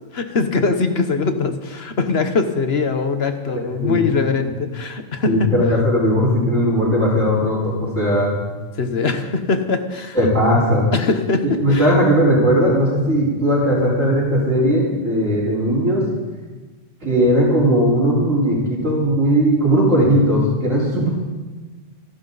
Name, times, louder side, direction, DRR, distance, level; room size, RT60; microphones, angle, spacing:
voice 1, 0.1-5.5 8.8-10.2 10.9-11.9, left 4 dB, 55° left, 8 dB, 1.4 m, -21 dB
voice 2, 5.2-8.3 10.1-10.9 11.4-16.0 17.0-21.1, equal, 85° right, -10 dB, 4.9 m, -17 dB
27.0 x 11.5 x 4.1 m, 1.3 s
omnidirectional pair, 1.3 m